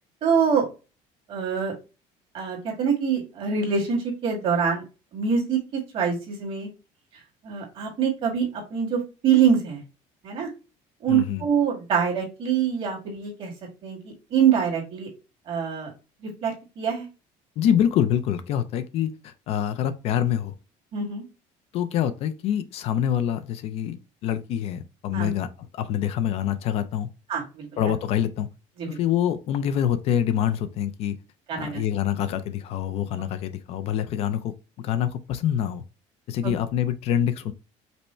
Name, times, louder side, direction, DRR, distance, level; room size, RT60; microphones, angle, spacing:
voice 1, 0.2-0.6 1.3-1.7 2.3-4.8 5.1-6.7 7.4-9.8 10.2-10.5 11.0-13.5 13.8-15.1 15.5-15.9 16.2-17.1 20.9-21.2 25.1-25.3 27.3-27.9 28.8-29.0 31.5-31.8 36.4-36.5, right 7 dB, 40° right, 1.9 m, -25 dB
voice 2, 11.1-11.4 17.6-20.5 21.7-27.1 27.8-28.5 28.9-31.2 31.6-35.8 36.3-37.5, left 10 dB, 45° left, 0.4 m, -26 dB
5.3 x 2.1 x 4.3 m
cardioid pair, 175°, 14 cm